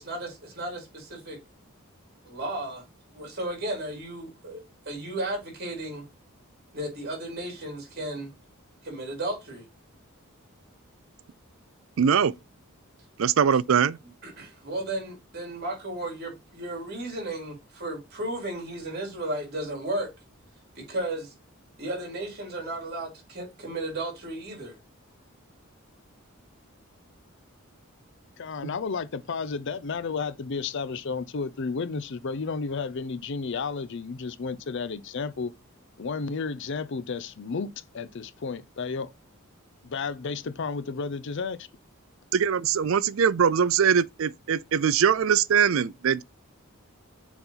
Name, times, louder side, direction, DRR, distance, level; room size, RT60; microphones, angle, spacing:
voice 1, 0.6-1.4 2.2-2.8 3.1-6.1 6.7-8.3 8.8-9.6 14.2-20.1 20.8-21.3 21.8-24.8, right 1 dB, 50° right, 3.5 m, -34 dB
voice 2, 12.0-12.3 13.2-14.0 28.6-28.7 42.3-46.2, right 7 dB, 65° right, 0.4 m, -22 dB
voice 3, 28.4-35.5 36.0-39.1 39.8-41.7, left 4 dB, 55° left, 0.5 m, -32 dB
6.9 x 4.1 x 3.9 m
head